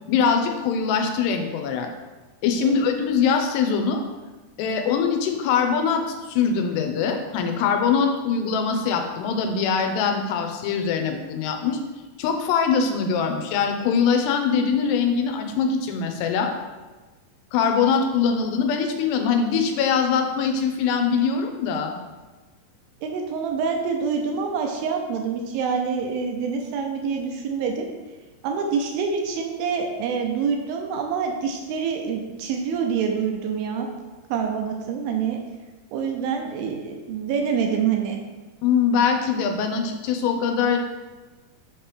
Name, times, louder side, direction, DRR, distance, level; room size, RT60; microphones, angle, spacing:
voice 1, 0.1-1.9 2.4-4.0 4.6-11.8 12.2-16.5 17.5-21.9 38.6-40.8, left 6 dB, 90° left, 5 dB, 2.8 m, -22 dB
voice 2, 23.0-27.9 28.4-33.9 34.3-35.4 35.9-38.2, right 6 dB, 80° right, 3 dB, 2.1 m, -26 dB
7.3 x 3.0 x 4.9 m, 1.2 s
omnidirectional pair, 4.7 m